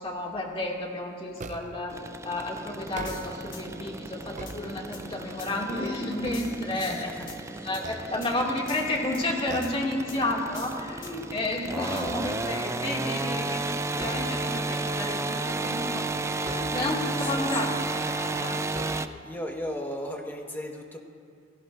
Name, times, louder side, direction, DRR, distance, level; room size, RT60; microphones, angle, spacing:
voice 1, 0.0-2.0 2.2-7.1 7.6-13.7 14.0-16.1 16.4-18.6, left 1 dB, 30° left, -2 dB, 2.4 m, -31 dB
sound 1, 1.4-1.9 2.8-3.6 4.1-5.2 5.7-7.2 7.7-8.7 9.5-10.0 10.4-10.6 11.0-12.7 13.9-14.7 16.4-17.2 18.0-18.1 18.7-19.5, right 2 dB, 40° right, 0.7 m, -42 dB
sound 2, 1.9-19.1, right 2 dB, 15° right, 0.4 m, -33 dB
sound 3, 3.1-3.6 4.5-4.6 4.9-5.0 5.4-5.6 6.3-7.4 7.7-7.9 8.2-8.3 8.7-9.3 9.6-9.7 10.1-10.2 10.6-11.1 12.0-12.1, left 8 dB, 70° left, 1.4 m, -45 dB
voice 2, 6.7-7.7 17.2-17.5 19.2-21.0, equal, 10° left, 0 dB, 1.5 m, -36 dB
29.0 x 18.5 x 2.6 m, 2.2 s
head